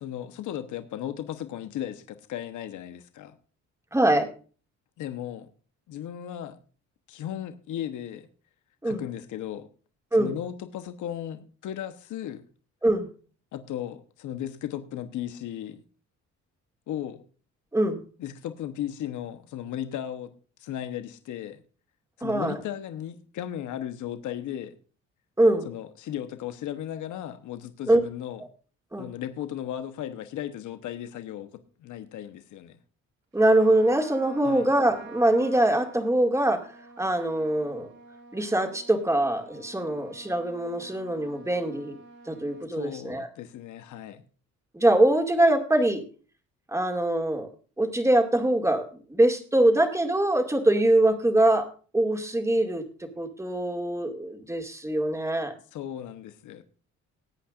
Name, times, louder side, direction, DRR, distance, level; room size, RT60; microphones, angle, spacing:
voice 1, 0.0-3.4 5.0-5.5 5.9-6.6 7.1-8.3 8.8-9.7 10.2-12.4 13.5-15.8 16.9-17.2 18.2-20.3 20.6-21.6 22.2-24.8 25.6-28.4 29.0-32.8 34.4-34.7 42.7-44.2 55.7-56.6, left 11 dB, 80° left, 9 dB, 1.1 m, -36 dB
voice 2, 3.9-4.3 8.8-9.0 10.1-10.4 12.8-13.1 17.7-18.0 22.2-22.6 25.4-25.7 27.9-28.0 28.9-29.1 33.3-36.7 37.0-37.9 38.3-42.0 42.3-43.3 44.7-46.0 46.7-47.5 47.8-51.7 51.9-52.8 53.2-55.5, right 1 dB, 10° right, 4 dB, 2.3 m, -23 dB
Trumpet, 33.3-42.7, right 2 dB, 65° right, 4.3 m, -48 dB
20.0 x 8.7 x 2.5 m, 0.38 s
cardioid pair, 90°, 30 cm